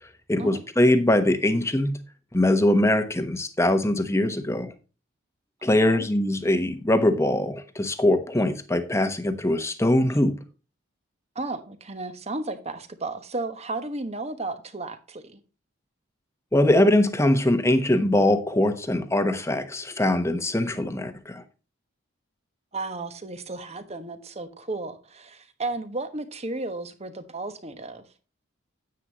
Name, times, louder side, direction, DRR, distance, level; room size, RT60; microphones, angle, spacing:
voice 1, 0.3-2.0 2.3-4.7 5.6-10.4 16.5-21.4, left 1 dB, 15° left, 1.1 m, -22 dB
voice 2, 11.3-15.4 22.7-28.0, right 2 dB, 30° right, 1.2 m, -34 dB
10.0 x 9.0 x 3.0 m
head